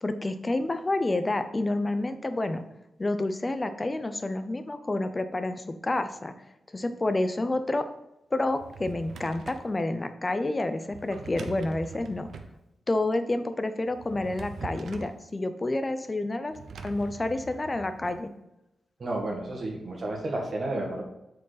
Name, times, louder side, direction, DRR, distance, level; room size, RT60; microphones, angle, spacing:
voice 1, 0.0-2.6 3.0-6.3 6.7-7.9 8.3-12.3 12.9-16.5 16.8-18.3, left 2 dB, 20° left, 9 dB, 0.6 m, -29 dB
Drawer open or close, 8.4-9.7 10.9-12.6 13.9-15.2 16.5-18.2, right 4 dB, 70° right, 0.7 m, -43 dB
voice 2, 19.0-21.0, right 2 dB, 40° right, 1 dB, 1.8 m, -31 dB
7.5 x 4.7 x 4.1 m, 0.90 s
wide cardioid pair, 145°, 0 cm